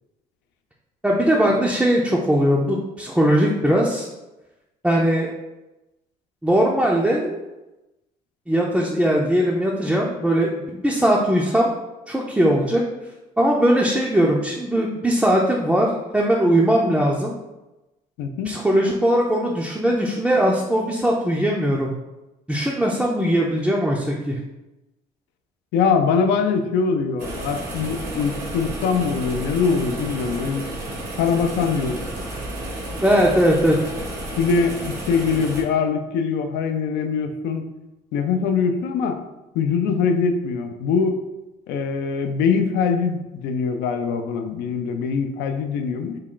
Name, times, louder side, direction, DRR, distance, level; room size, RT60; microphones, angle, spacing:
voice 1, 1.0-4.1 4.8-5.3 6.4-7.4 8.5-11.7 12.1-12.8 13.4-17.3 18.4-21.9 22.5-24.4 33.0-33.8, equal, 5° right, -3 dB, 0.4 m, -20 dB
voice 2, 18.2-18.5 25.7-30.6 31.2-32.0 34.4-37.7 38.1-39.2 39.5-41.2 41.7-46.2, left 5 dB, 85° left, 6 dB, 0.4 m, -22 dB
sound 1, 27.2-35.6, right 1 dB, 85° right, 1.1 m, -32 dB
3.5 x 2.2 x 3.7 m, 1.0 s
cardioid pair, 110°, 17 cm